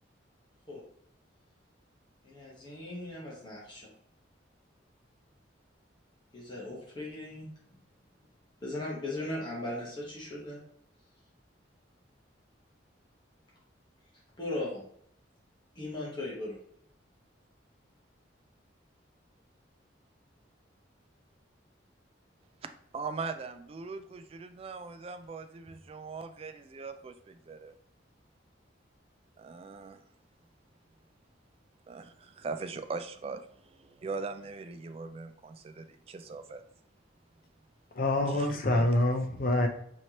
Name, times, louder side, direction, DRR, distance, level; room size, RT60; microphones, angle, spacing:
voice 1, 2.2-3.9 6.3-7.5 8.6-10.6 14.4-14.8 15.8-16.6, left 1 dB, 25° left, -5 dB, 1.1 m, -38 dB
voice 2, 22.9-27.7 29.4-30.0 31.9-36.6 38.3-38.9, right 4 dB, 30° right, 9 dB, 0.3 m, -40 dB
voice 3, 37.9-39.7, left 1 dB, 50° left, 5 dB, 0.6 m, -26 dB
4.3 x 3.0 x 2.8 m, 0.69 s
head